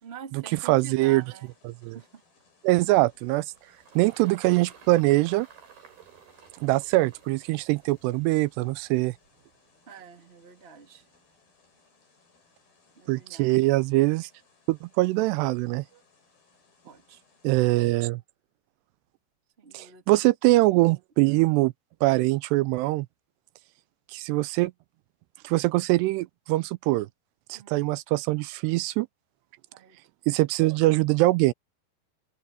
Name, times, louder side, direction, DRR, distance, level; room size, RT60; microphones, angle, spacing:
voice 1, 0.0-1.5 1.8-2.2 9.9-11.1 12.9-13.7 15.9-16.0 16.8-17.2 19.6-20.3 21.2-21.5 27.5-27.9 29.7-30.0, right 7 dB, 30° right, 1.2 m, -47 dB
sound 1, 0.7-17.9, left 4 dB, 60° left, 9.4 m, -64 dB
voice 2, 0.7-1.2 1.7-2.0 2.6-3.5 4.0-5.5 6.6-9.1 13.1-14.3 14.7-15.8 17.4-18.2 19.7-21.7 22.0-23.1 24.1-24.7 25.4-27.1 27.5-29.1 30.3-31.5, right 20 dB, 85° right, 2.6 m, -23 dB
Engine, 2.9-9.5, right 7 dB, 65° right, 5.7 m, -54 dB
omnidirectional pair, 4.9 m